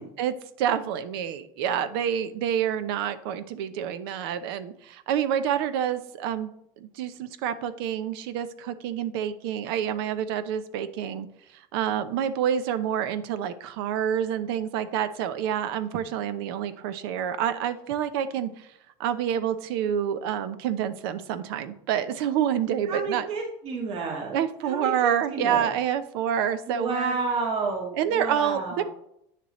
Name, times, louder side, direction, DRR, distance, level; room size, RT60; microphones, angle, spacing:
voice 1, 0.2-6.5 6.8-11.3 11.7-18.7 19.0-23.3 24.3-27.2 27.9-28.8, right 9 dB, 85° right, 11 dB, 0.7 m, -28 dB
voice 2, 22.9-24.4 24.6-25.7 26.7-28.8, right 4 dB, 55° right, -2 dB, 2.2 m, -30 dB
9.2 x 6.7 x 3.1 m, 0.75 s
supercardioid pair, 125°, 12 cm